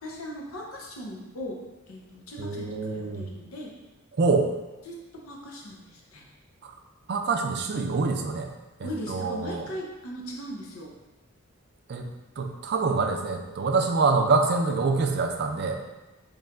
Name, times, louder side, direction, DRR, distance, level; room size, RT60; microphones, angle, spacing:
voice 1, 0.0-1.6 1.9-3.7 4.8-6.2 8.8-10.9, equal, 85° left, -1 dB, 0.8 m, -39 dB
voice 2, 2.4-3.3 4.1-4.5 6.6-6.7 7.1-8.5 8.8-9.7 11.9-12.1 12.4-15.8, right 4 dB, 50° right, 4 dB, 0.4 m, -25 dB
4.5 x 3.2 x 2.5 m, 1.1 s
head